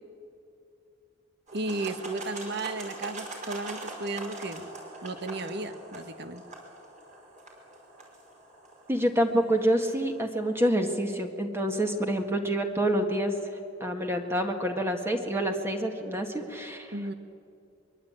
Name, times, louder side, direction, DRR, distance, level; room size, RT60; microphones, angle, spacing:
sound 1, 1.5-10.5, right 2 dB, 40° right, 5.2 m, -43 dB
voice 1, 1.5-4.7 5.0-6.4 16.9-17.1, right 2 dB, 60° right, 9 dB, 1.3 m, -34 dB
voice 2, 8.9-13.3 13.8-16.9, right 1 dB, 15° right, 3 dB, 1.7 m, -27 dB
23.5 x 23.0 x 8.8 m, 2.6 s
head